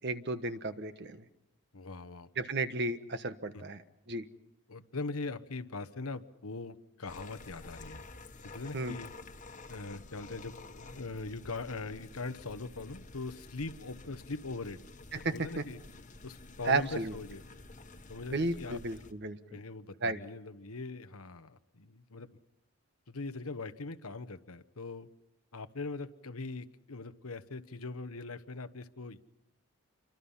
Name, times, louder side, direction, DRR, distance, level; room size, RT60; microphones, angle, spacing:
voice 1, 0.0-1.2 2.4-3.8 4.1-4.3 8.7-8.9 15.1-15.6 16.6-17.1 18.3-19.6 20.0-20.2, right 2 dB, 50° right, 10 dB, 1.3 m, -33 dB
voice 2, 1.7-2.3 3.5-3.7 4.7-8.0 8.4-9.1 9.7-14.8 15.1-15.8 16.2-17.4 18.1-18.8 19.5-22.3 23.1-25.1 25.5-29.2, left 3 dB, 75° left, 11 dB, 1.2 m, -41 dB
sound 1, 7.1-19.1, left 2 dB, 35° left, 1.5 m, -50 dB
29.0 x 24.5 x 5.7 m, 0.89 s
head